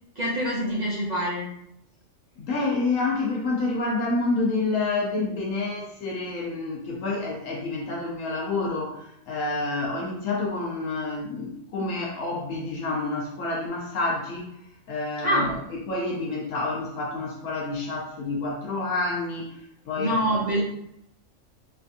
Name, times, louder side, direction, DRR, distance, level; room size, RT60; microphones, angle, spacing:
voice 1, 0.2-1.5 15.2-15.5 20.0-20.6, equal, 40° right, -7 dB, 0.7 m, -25 dB
voice 2, 2.4-14.5 14.9-15.6 15.9-19.6 19.9-20.6, left 3 dB, 80° left, -2 dB, 1.0 m, -28 dB
3.3 x 3.3 x 2.6 m, 0.77 s
omnidirectional pair, 1.3 m